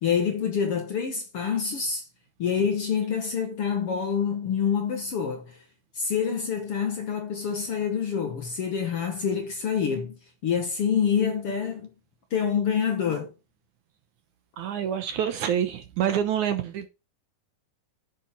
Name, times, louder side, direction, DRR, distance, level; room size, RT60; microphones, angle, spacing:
voice 1, 0.0-2.0 2.4-5.6 6.0-10.2 10.4-11.9 12.3-13.3, left 7 dB, 55° left, 1.8 m, -26 dB
voice 2, 14.6-16.9, right 9 dB, 65° right, 2.2 m, -27 dB
10.0 x 7.6 x 4.4 m
omnidirectional pair, 4.1 m